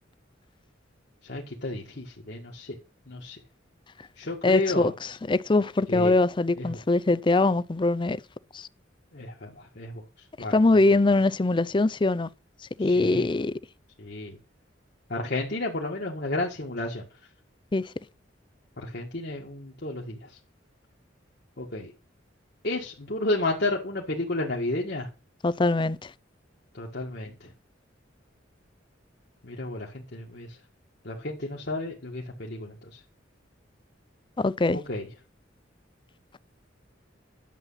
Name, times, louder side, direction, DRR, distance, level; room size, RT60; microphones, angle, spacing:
voice 1, 1.2-2.8 3.1-3.4 4.2-4.9 5.9-6.1 6.6-6.8 9.1-10.0 10.4-10.5 10.9-11.0 12.8-13.3 14.0-14.4 15.1-17.0 18.8-20.4 21.6-21.9 22.6-25.1 26.7-27.5 29.4-30.6 31.0-33.0 34.7-35.1, left 2 dB, 60° left, 1.8 m, -32 dB
voice 2, 4.4-8.2 8.5-8.7 10.5-12.3 12.8-13.5 17.7-17.8 25.4-26.1 34.4-34.8, left 2 dB, 25° left, 0.5 m, -22 dB
11.0 x 7.5 x 5.7 m
head